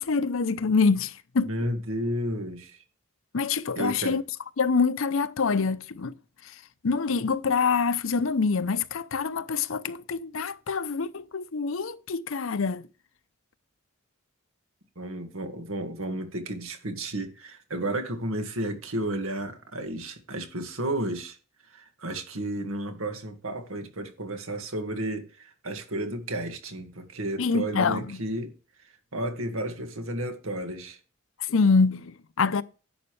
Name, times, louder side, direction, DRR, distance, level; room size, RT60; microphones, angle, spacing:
voice 1, 0.0-1.5 3.3-4.2 4.6-6.1 6.8-12.8 27.4-28.2 31.5-32.6, left 4 dB, 75° left, 0.6 m, -25 dB
voice 2, 1.4-2.8 3.8-4.2 15.0-21.4 21.7-28.5 29.1-31.0, right 1 dB, 90° right, 1.9 m, -32 dB
11.0 x 8.0 x 3.2 m
head